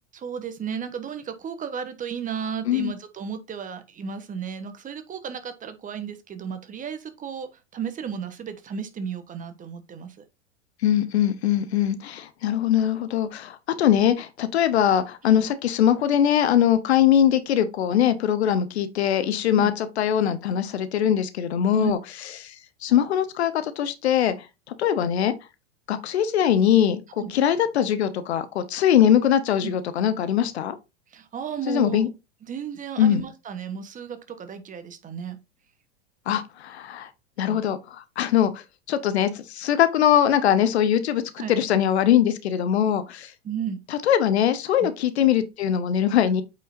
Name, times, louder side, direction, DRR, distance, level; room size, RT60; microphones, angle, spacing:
voice 1, 0.1-10.2 15.3-15.5 19.5-19.7 21.7-21.9 27.2-27.3 29.6-29.8 31.1-32.1 32.5-35.4 37.4-37.6 41.4-41.5 43.4-43.8 44.8-44.9, right 7 dB, 20° right, 1.3 m, -34 dB
voice 2, 10.8-22.0 22.4-24.3 24.7-25.3 25.9-30.8 31.7-32.1 33.0-33.2 36.3-37.1 37.4-43.3 43.9-46.4, left 10 dB, 70° left, 1.1 m, -22 dB
8.4 x 5.4 x 2.7 m
hypercardioid pair, 100°, 35 cm